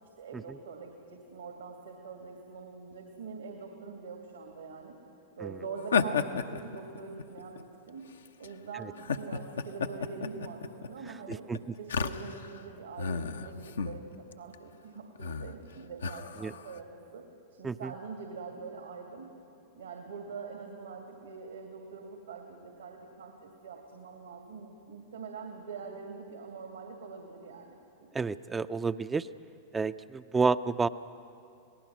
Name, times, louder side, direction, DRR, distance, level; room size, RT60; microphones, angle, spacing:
voice 1, 0.0-5.0 5.4-8.1 8.4-11.5 11.8-17.2 17.5-19.3 19.7-28.6, right 5 dB, 80° right, 2 dB, 2.3 m, -44 dB
sound 1, 5.8-7.6 8.3-8.5 9.0-12.6 13.0-14.0 14.3-14.5 15.2-15.5 16.0-16.7, left 6 dB, 80° left, 0.8 m, -32 dB
voice 2, 11.3-11.6 16.4-16.5 17.6-17.9 28.1-29.3 29.7-30.9, right 4 dB, 15° right, 12 dB, 0.5 m, -29 dB
28.5 x 18.5 x 6.1 m, 2.6 s
figure-of-eight pair, 95°, 0 cm